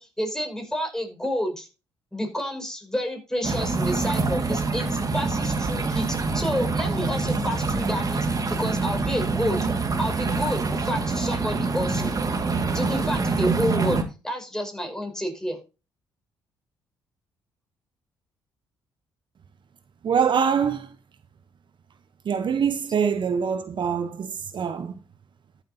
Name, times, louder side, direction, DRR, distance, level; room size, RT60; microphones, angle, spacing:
voice 1, 0.0-1.7 2.1-9.7 10.0-12.2 12.7-15.6, equal, 5° left, 5.6 m, -30 dB
sound 1, 3.4-14.0, right 3 dB, 40° right, 2.1 m, -25 dB
voice 2, 20.0-20.9 22.2-24.9, right 7 dB, 55° right, 0.9 m, -24 dB
14.0 x 8.1 x 2.8 m
hypercardioid pair, 55°, 10 cm